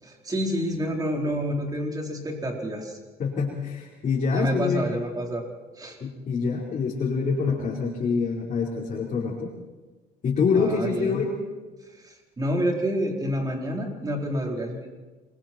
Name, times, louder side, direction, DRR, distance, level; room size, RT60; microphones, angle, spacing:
voice 1, 0.0-3.0 4.3-5.4 5.8-6.0 10.5-11.2 12.0-14.9, equal, 20° right, 1 dB, 4.4 m, -28 dB
voice 2, 3.2-4.9 6.0-9.5 10.2-11.4, left 5 dB, 45° left, -5 dB, 4.7 m, -26 dB
28.0 x 22.5 x 4.6 m, 1.3 s
cardioid pair, 110°, 17 cm